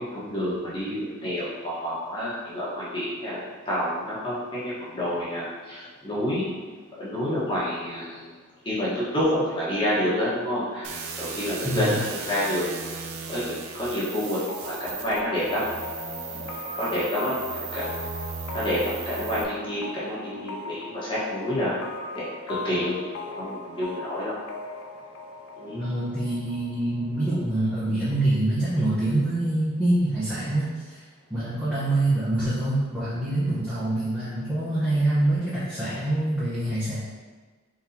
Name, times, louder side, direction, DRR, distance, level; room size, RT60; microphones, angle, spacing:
voice 1, 0.0-3.4 3.6-6.5 7.0-8.3 8.6-12.7 13.3-14.4 14.6-15.6 16.8-17.8 18.5-21.8 22.1-23.0 23.2-24.3 25.6-25.8, equal, 25° left, -9 dB, 1.4 m, -28 dB
sound 1, 10.8-19.4, right 5 dB, 80° right, 0.5 m, -36 dB
sound 2, 14.5-28.0, left 3 dB, 90° left, 0.5 m, -39 dB
voice 2, 25.7-31.0 31.3-37.0, right 1 dB, 10° right, -13 dB, 1.0 m, -25 dB
4.5 x 4.0 x 2.9 m, 1.4 s
head